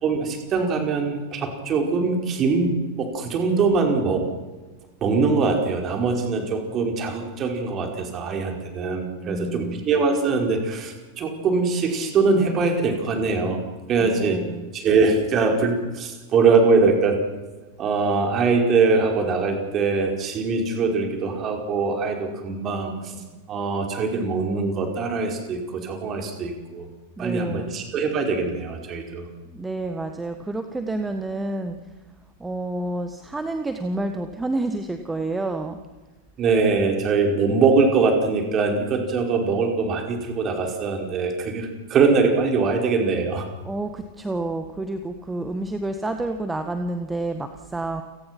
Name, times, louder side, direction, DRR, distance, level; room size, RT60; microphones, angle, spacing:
voice 1, 0.0-4.2 5.0-13.6 13.9-14.4 14.7-17.2 17.8-23.2 23.5-26.9 27.2-29.2 36.4-43.5, right 4 dB, 30° right, 4 dB, 4.9 m, -22 dB
voice 2, 9.2-9.9 14.0-14.7 27.2-27.7 29.5-31.8 32.4-35.8 43.6-48.0, right 2 dB, 10° right, 7 dB, 1.6 m, -29 dB
29.5 x 18.5 x 6.0 m, 1.2 s
figure-of-eight pair, 90°, 0 cm